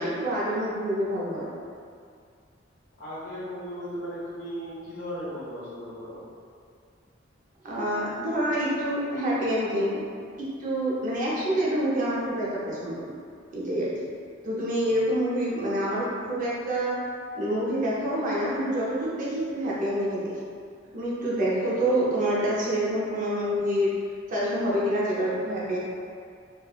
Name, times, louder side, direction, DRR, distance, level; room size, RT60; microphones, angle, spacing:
voice 1, 0.0-1.5 7.6-10.0 10.4-13.1 13.5-14.0 14.4-17.0 17.3-20.3 20.9-23.9 24.3-25.8, right 1 dB, 45° right, -7 dB, 0.5 m, -27 dB
voice 2, 3.0-6.2 14.7-15.0, equal, 80° left, -13 dB, 0.7 m, -37 dB
3.2 x 2.3 x 2.2 m, 2.3 s
head